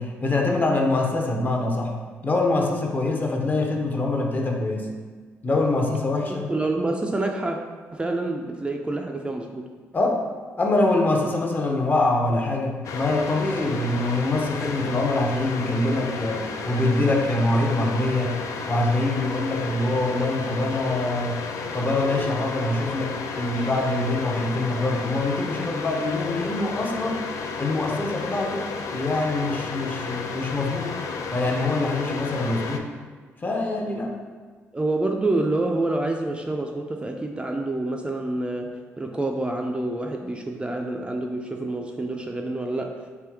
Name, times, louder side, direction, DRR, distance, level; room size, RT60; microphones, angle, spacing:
voice 1, 0.0-1.9 2.2-4.9 5.4-6.5 9.9-10.2 10.6-18.4 18.7-21.5 21.7-27.2 27.6-31.0 31.3-32.9 33.4-34.1, left 2 dB, 30° left, 1 dB, 0.7 m, -24 dB
voice 2, 6.5-7.6 7.9-9.7 34.7-43.0, right 2 dB, 15° right, 2 dB, 0.4 m, -27 dB
sound 1, 12.8-32.8, left 5 dB, 65° left, 0.3 m, -32 dB
3.4 x 2.7 x 3.3 m, 1.5 s
hypercardioid pair, 50°, 6 cm